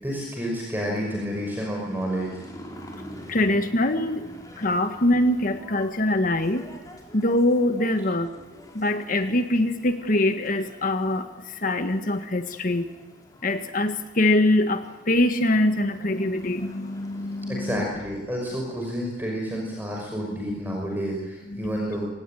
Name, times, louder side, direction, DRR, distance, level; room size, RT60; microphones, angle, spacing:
voice 1, 0.0-2.3 17.5-22.1, equal, 10° right, -1 dB, 5.9 m, -30 dB
sound 1, 0.7-17.7, equal, 20° left, 4.9 m, -47 dB
voice 2, 3.3-4.2 4.6-6.6 7.1-8.3 8.7-11.2 11.6-12.8 13.4-17.8 21.5-21.8, left 1 dB, 50° left, 8 dB, 1.6 m, -23 dB
26.0 x 19.0 x 9.3 m, 1.1 s
head